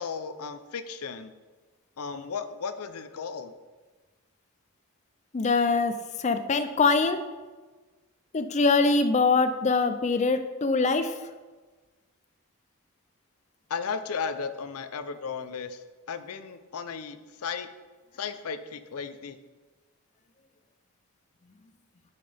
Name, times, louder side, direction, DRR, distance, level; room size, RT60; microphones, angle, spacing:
voice 1, 0.0-1.3 2.0-3.5 13.7-17.7 18.2-19.4, left 5 dB, 80° left, 11 dB, 0.6 m, -35 dB
voice 2, 5.3-5.9 6.2-7.2 8.3-11.1, left 4 dB, 30° left, 9 dB, 0.4 m, -23 dB
10.0 x 5.7 x 3.4 m, 1.3 s
head